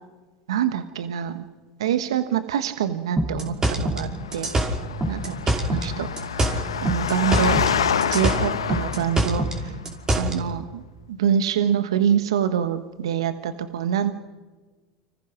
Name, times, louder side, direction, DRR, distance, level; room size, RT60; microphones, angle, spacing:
voice 1, 0.5-1.4 1.8-4.5 5.1-6.1 6.8-7.6 8.1-9.7 10.2-10.8 11.1-14.1, right 9 dB, 80° right, 10 dB, 1.3 m, -25 dB
sound 1, 3.2-5.9 6.2-10.4, right 1 dB, 25° right, 5.4 m, -24 dB
Engine, 4.0-9.7, left 8 dB, 90° left, 1.1 m, -27 dB
29.5 x 26.0 x 6.0 m, 1.4 s
hypercardioid pair, 80°, 3 cm